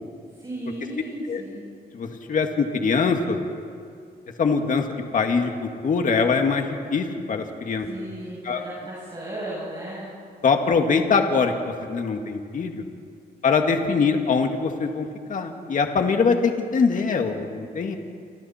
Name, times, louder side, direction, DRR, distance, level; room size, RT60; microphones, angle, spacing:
voice 1, 0.4-1.6 7.8-10.1, right 1 dB, 25° right, -8 dB, 7.8 m, -35 dB
voice 2, 1.9-3.4 4.4-4.8 5.1-7.9 8.4-8.6 10.4-12.8 13.4-17.9, left 5 dB, 50° left, 4 dB, 2.0 m, -23 dB
29.0 x 26.0 x 4.4 m, 2.3 s
cardioid pair, 120°, 17 cm